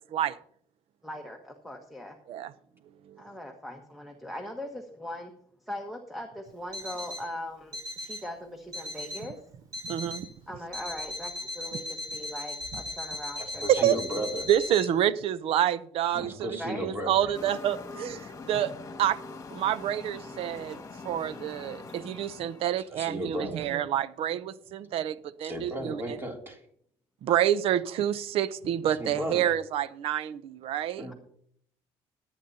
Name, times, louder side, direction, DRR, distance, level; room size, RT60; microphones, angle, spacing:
voice 1, 1.0-2.2 3.2-5.3 5.7-9.4 10.5-13.6 16.6-16.9, left 1 dB, ahead, 1.4 m, -40 dB
Alarm, 6.7-7.3 7.7-8.3 8.7-9.3 9.7-10.3 10.7-14.9, left 1 dB, 35° right, 4.4 m, -38 dB
voice 2, 9.8-10.3 13.7-14.0 14.5-18.7 19.0-19.2 19.5-20.8 21.0-26.2 27.2-31.1, right 11 dB, 70° right, 0.7 m, -28 dB
voice 3, 13.4-14.5 16.1-17.3 23.0-23.7 25.4-26.6 29.0-29.4 31.0-31.1, equal, 20° right, 2.9 m, -35 dB
sound 1, 17.3-22.8, left 4 dB, 30° left, 1.9 m, -43 dB
22.5 x 9.1 x 2.8 m
cardioid pair, 110°, 10 cm